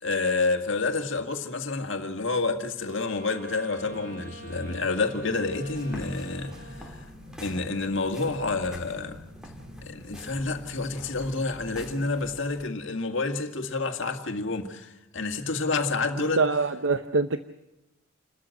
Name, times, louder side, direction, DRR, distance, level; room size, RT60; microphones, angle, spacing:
voice 1, 0.0-7.1 7.4-9.2 9.8-16.4, left 3 dB, 60° left, 2.0 m, -29 dB
Wind instrument woodwind instrument, 2.8-7.2, right 2 dB, 40° right, 2.9 m, -46 dB
sound 1, 3.8-12.1, left 2 dB, 90° right, 6.0 m, -47 dB
sound 2, 5.6-12.6, equal, 5° right, 2.0 m, -46 dB
voice 2, 16.2-17.4, right 3 dB, 65° right, 0.8 m, -25 dB
29.0 x 13.5 x 7.7 m
head